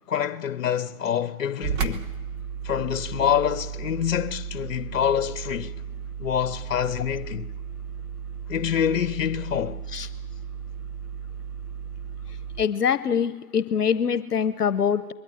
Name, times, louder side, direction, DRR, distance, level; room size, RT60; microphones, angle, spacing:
voice 1, 0.1-2.1 2.6-5.7 6.2-7.5 8.5-9.8, left 9 dB, 60° left, 1.2 m, -26 dB
sound 1, 1.6-12.7, right 7 dB, 20° right, 1.0 m, -34 dB
voice 2, 12.6-15.1, left 7 dB, 75° left, 1.0 m, -24 dB
21.5 x 14.5 x 9.8 m
figure-of-eight pair, 130°, 46 cm